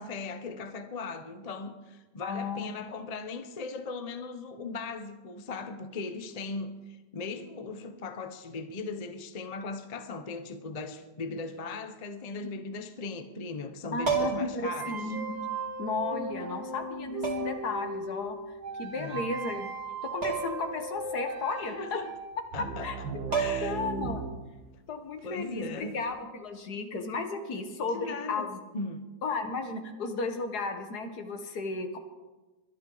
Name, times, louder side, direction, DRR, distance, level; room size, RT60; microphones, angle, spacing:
voice 1, 0.0-15.0 18.9-19.3 21.6-22.1 22.5-22.9 23.3-23.8 25.2-26.0 27.5-27.7 27.9-29.1, left 4 dB, 35° left, 0.6 m, -38 dB
voice 2, 2.2-2.7 13.9-15.3 15.8-18.4 18.8-19.7 20.0-22.0 22.6-23.0 23.3-24.3 24.9-28.6 29.2-32.0, left 3 dB, 60° left, 1.8 m, -34 dB
sound 1, 14.0-14.6 15.9-16.0 17.2-17.7 20.2-20.6 21.0-21.1 22.9-23.0 23.3-23.9 25.9-26.1, right 6 dB, 50° right, 2.6 m, -30 dB
sound 2, 14.6-24.2, right 3 dB, 90° right, 2.4 m, -37 dB
23.0 x 10.5 x 4.0 m
omnidirectional pair, 2.0 m